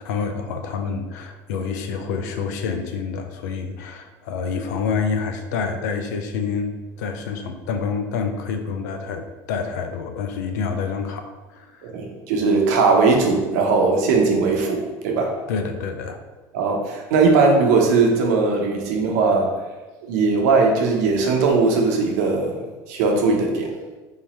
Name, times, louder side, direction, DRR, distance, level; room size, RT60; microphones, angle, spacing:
voice 1, 0.0-11.9 15.5-16.2, left 5 dB, 85° left, 6 dB, 0.5 m, -27 dB
voice 2, 11.8-15.4 16.5-19.6 20.0-23.7, right 4 dB, 80° right, 1 dB, 0.9 m, -19 dB
3.6 x 3.0 x 4.2 m, 1.2 s
supercardioid pair, 100°, 9 cm